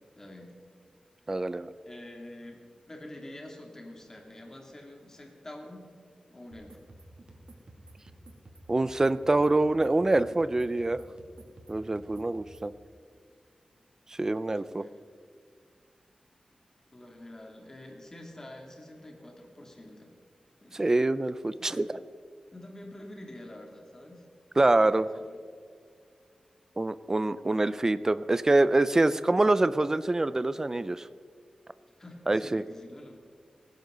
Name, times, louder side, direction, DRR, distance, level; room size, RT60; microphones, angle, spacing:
voice 1, 0.1-0.5 1.9-5.9 6.3-6.8 14.4-15.1 16.9-20.1 20.6-20.9 21.6-21.9 22.5-24.3 24.5-25.4 32.0-33.2, left 1 dB, 25° left, 0 dB, 2.8 m, -47 dB
voice 2, 1.3-1.7 8.7-11.0 11.7-12.7 14.2-14.9 20.7-22.0 24.6-25.1 26.8-31.1 32.3-32.6, right 2 dB, 25° right, 15 dB, 0.5 m, -25 dB
sound 1, 6.5-12.7, right 1 dB, 50° right, 2.6 m, -52 dB
19.0 x 16.5 x 4.0 m, 2.1 s
wide cardioid pair, 130°, 2 cm